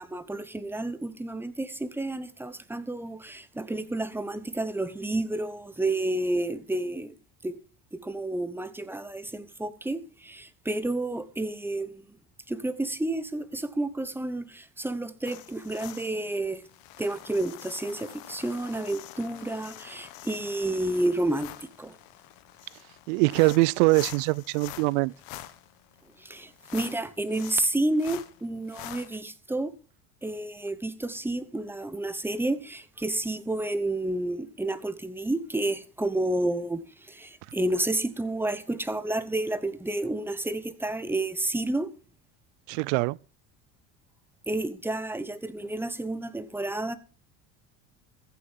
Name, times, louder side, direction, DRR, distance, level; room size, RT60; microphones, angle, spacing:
voice 1, 0.0-7.2 7.4-7.6 7.9-12.2 12.5-16.6 17.0-21.9 26.2-29.7 30.2-41.9 44.5-47.0, right 2 dB, 5° right, 0.9 m, -30 dB
sound 1, 15.3-29.1, left 15 dB, 75° left, 1.4 m, -45 dB
voice 2, 23.1-25.1 42.7-43.2, right 24 dB, 85° right, 0.5 m, -23 dB
14.5 x 7.0 x 7.3 m
cardioid pair, 120°, 36 cm